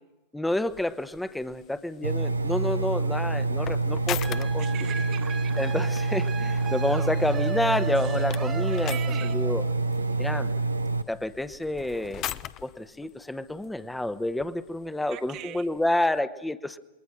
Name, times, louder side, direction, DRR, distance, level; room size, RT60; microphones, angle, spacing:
voice 1, 0.3-4.7 5.6-9.0 9.3-9.6 10.2-10.5 11.1-12.2 12.6-16.8, left 1 dB, 5° left, 13 dB, 1.1 m, -29 dB
sound 1, 0.7-16.2, left 12 dB, 35° left, 0.9 m, -43 dB
Engine, 2.0-11.0, right 3 dB, 80° right, 1.0 m, -27 dB
sound 2, 4.2-9.7, right 5 dB, 15° right, 1.1 m, -38 dB
voice 2, 4.6-5.5 8.0-8.2 8.7-9.4 15.1-15.7, right 11 dB, 40° right, 4 dB, 1.5 m, -41 dB
28.0 x 22.0 x 6.1 m, 1.0 s
figure-of-eight pair, 90°, 0 cm